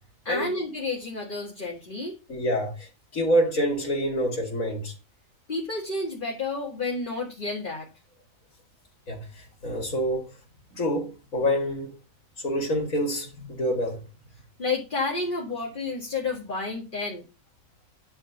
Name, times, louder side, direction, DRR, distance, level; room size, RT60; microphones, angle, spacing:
voice 1, 0.3-2.2 5.5-7.9 14.6-17.3, left 3 dB, 40° left, 2.1 m, -30 dB
voice 2, 2.3-4.9 9.1-10.3 10.7-11.9 12.4-14.0, equal, 85° left, 2.7 m, -27 dB
10.0 x 3.8 x 7.0 m
omnidirectional pair, 1.4 m